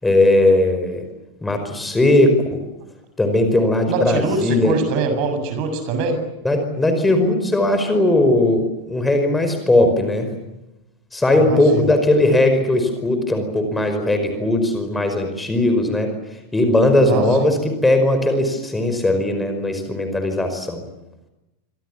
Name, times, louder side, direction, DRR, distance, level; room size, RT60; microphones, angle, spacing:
voice 1, 0.0-1.0 1.4-2.6 3.2-4.8 6.4-10.3 11.1-20.9, left 1 dB, 10° left, 7 dB, 5.1 m, -18 dB
voice 2, 3.9-6.2 11.4-11.8 17.0-17.5, right 4 dB, 45° right, 8 dB, 7.3 m, -23 dB
26.5 x 26.0 x 7.4 m, 0.96 s
figure-of-eight pair, 90°, 0 cm